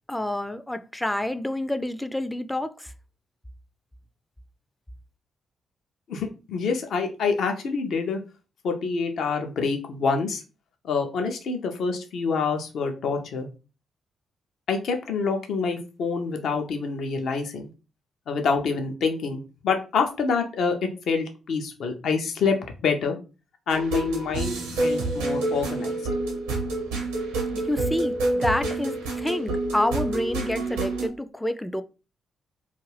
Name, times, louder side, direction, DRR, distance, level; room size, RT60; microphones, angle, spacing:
voice 1, 0.1-2.9 27.5-31.8, left 1 dB, 10° left, 0.3 m, -28 dB
voice 2, 6.1-8.2 8.6-10.4 10.8-13.5 14.7-17.7 18.3-20.8 21.1-22.6 22.8-23.2 23.7-26.0, left 5 dB, 65° left, 0.5 m, -26 dB
sound 1, 23.7-31.1, right 2 dB, 85° right, 0.7 m, -28 dB
2.4 x 2.3 x 3.2 m
hypercardioid pair, 40°, 0 cm